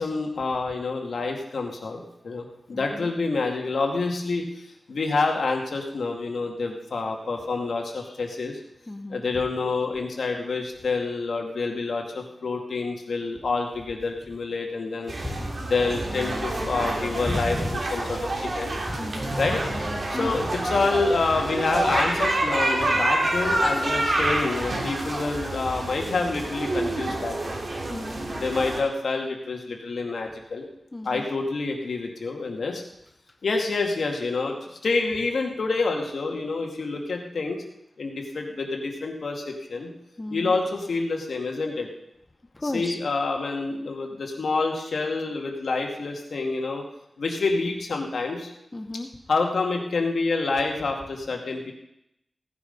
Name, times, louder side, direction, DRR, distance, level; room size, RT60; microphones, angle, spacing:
voice 1, 0.0-4.5 4.9-8.6 9.1-15.1 15.6-18.3 18.6-18.7 19.4-19.6 20.1-27.6 28.3-30.7 31.0-32.8 33.4-37.6 38.0-39.9 40.3-41.9 42.6-46.9 47.2-48.5 49.3-51.7, left 3 dB, 80° left, 2 dB, 2.2 m, -27 dB
voice 2, 2.7-3.1 8.9-9.2 15.2-15.6 17.3-17.7 18.9-19.3 20.1-20.3 27.9-28.3 30.9-31.2 40.2-40.5 42.6-43.0 48.7-49.1, left 2 dB, 25° left, 6 dB, 0.9 m, -32 dB
sound 1, 15.1-28.8, right 2 dB, 50° right, 3.0 m, -27 dB
17.0 x 9.8 x 5.4 m, 0.82 s
wide cardioid pair, 100°, 0 cm